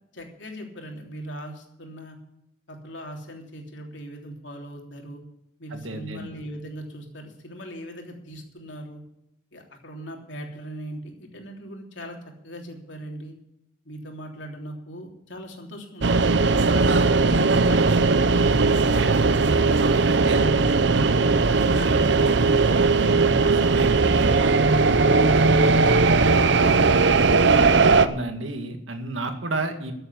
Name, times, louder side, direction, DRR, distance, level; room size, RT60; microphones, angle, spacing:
voice 1, 0.1-2.2 2.7-5.2 5.6-9.0 9.5-12.2 12.4-13.3 13.8-21.2 21.5-22.8, equal, 70° left, 2 dB, 3.2 m, -38 dB
voice 2, 5.7-6.3 21.5-22.0 27.8-29.9, right 2 dB, 90° right, 6 dB, 2.1 m, -32 dB
sound 1, 16.0-28.1, right 4 dB, 65° right, 0.7 m, -18 dB
14.0 x 7.8 x 8.5 m, 0.85 s
head